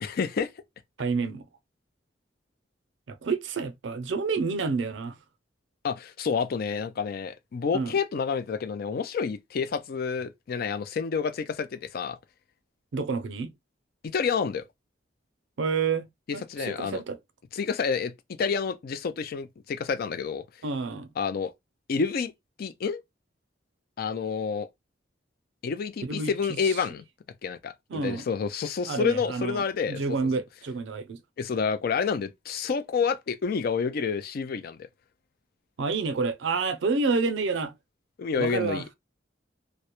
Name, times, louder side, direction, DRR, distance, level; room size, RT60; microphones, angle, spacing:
voice 1, 0.0-0.5 5.8-12.2 14.0-14.6 16.5-17.0 17.5-18.1 18.4-20.4 21.2-21.5 21.9-22.3 22.6-23.0 24.0-24.7 25.6-27.0 27.4-27.7 28.0-30.0 31.4-34.9 38.2-38.8, left 5 dB, 55° left, 0.4 m, -29 dB
voice 2, 1.0-1.4 3.1-5.2 7.7-7.9 12.9-13.5 15.6-16.1 16.3-17.2 20.6-21.1 26.0-26.3 26.6-26.8 27.9-28.2 28.9-31.2 35.8-37.7 38.4-38.8, right 4 dB, 80° right, 0.5 m, -29 dB
2.2 x 2.0 x 2.9 m
head